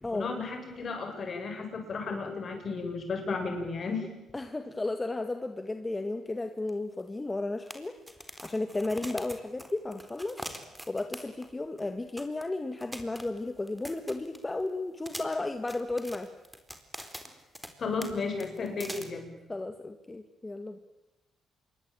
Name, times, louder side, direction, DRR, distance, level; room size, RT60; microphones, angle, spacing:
voice 1, 0.1-4.1 17.8-19.3, left 4 dB, 50° left, 4 dB, 8.0 m, -34 dB
voice 2, 4.3-10.4 10.9-16.3 19.5-20.8, left 2 dB, 20° left, 7 dB, 2.0 m, -34 dB
sound 1, 6.7-6.8 7.0-7.1 7.7-11.5 11.8-11.9 12.2-12.4 12.8-14.6 15.0-17.7 18.0-18.1 18.4-19.0, equal, 5° right, 4.1 m, -43 dB
27.0 x 23.0 x 9.2 m, 1.0 s
cardioid pair, 90°, 0 cm